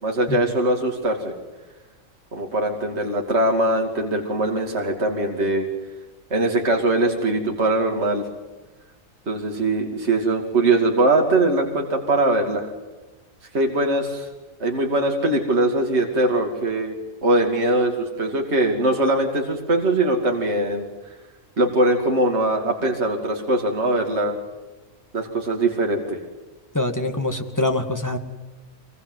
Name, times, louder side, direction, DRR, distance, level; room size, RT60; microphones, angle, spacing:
voice 1, 0.0-1.3 2.3-5.7 6.3-8.2 9.3-12.7 13.5-14.3 14.6-16.9 17.2-20.9 21.6-24.4 25.1-26.2, right 2 dB, 50° right, 1 dB, 2.9 m, -21 dB
voice 2, 26.7-28.2, left 2 dB, 15° left, 5 dB, 2.1 m, -24 dB
25.0 x 22.5 x 7.9 m, 1.2 s
omnidirectional pair, 1.4 m